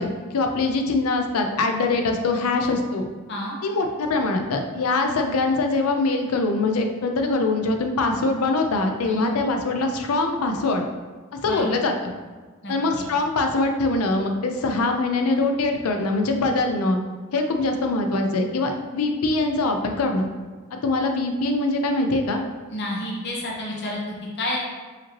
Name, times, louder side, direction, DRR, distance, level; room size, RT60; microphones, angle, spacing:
voice 1, 0.0-3.1 3.6-10.9 11.4-11.9 12.7-17.0 17.3-20.3 20.7-22.4, left 3 dB, 90° left, 4 dB, 0.5 m, -23 dB
voice 2, 12.6-13.0 22.7-24.6, left 1 dB, 55° left, -3 dB, 1.0 m, -30 dB
4.9 x 2.9 x 3.0 m, 1.4 s
head